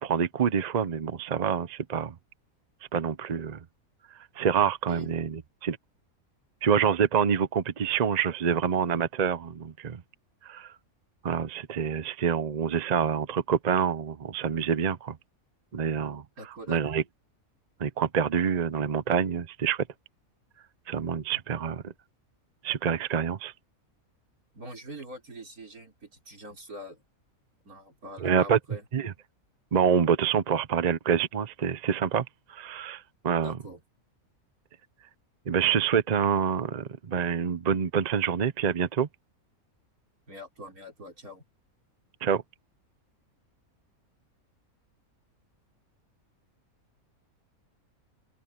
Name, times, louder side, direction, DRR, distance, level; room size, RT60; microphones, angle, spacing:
voice 1, 0.0-2.1 2.9-3.6 4.4-5.8 6.6-10.0 10.4-10.7 11.2-15.2 15.7-16.2 16.7-17.0 17.8-19.9 20.9-21.9 22.6-23.5 28.2-28.6 28.9-29.1 29.7-33.6 35.5-39.1 42.2-42.4, right 7 dB, 40° right, 0.6 m, -26 dB
voice 2, 16.4-16.8 24.5-27.0 27.6-28.9 33.4-33.8 40.3-41.4, equal, 80° right, 6.0 m, -43 dB
omnidirectional pair, 1.5 m